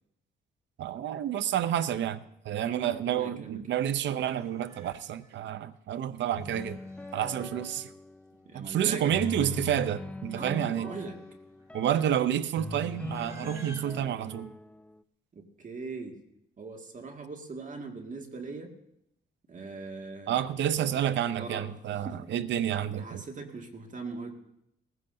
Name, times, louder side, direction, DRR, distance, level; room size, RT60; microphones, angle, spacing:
voice 1, 0.8-6.8 7.1-7.9 8.5-10.9 11.7-14.5 20.3-23.2, right 10 dB, 65° right, 14 dB, 0.6 m, -29 dB
voice 2, 2.6-3.6 8.5-9.6 10.3-11.2 15.3-16.2 16.6-18.8 19.5-20.5 21.4-21.7 22.0-22.3 22.9-24.3, right 3 dB, 40° right, 3 dB, 2.0 m, -40 dB
Livestock farm animals working animals, 4.4-5.3 6.2-7.5 8.5-8.6 8.8-9.3 9.6-9.8 10.5-14.1, right 1 dB, 15° right, 2.4 m, -54 dB
sound 1, 6.3-8.4 9.1-12.1 12.6-15.0, left 2 dB, 5° left, 0.4 m, -41 dB
19.0 x 15.5 x 2.7 m, 0.78 s
cardioid pair, 90°, 20 cm